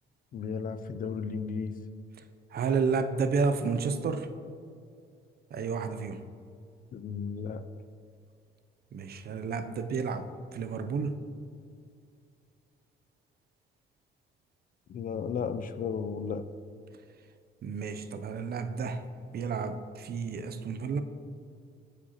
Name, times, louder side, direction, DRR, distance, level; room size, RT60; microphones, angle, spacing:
voice 1, 0.3-1.7 6.9-7.6 14.9-16.4, left 6 dB, 45° left, 11 dB, 0.4 m, -34 dB
voice 2, 2.5-4.3 5.5-6.2 8.9-11.2 17.6-21.0, right 5 dB, 50° right, 9 dB, 0.5 m, -31 dB
8.3 x 5.1 x 2.9 m, 2.4 s
cardioid pair, 90°, 20 cm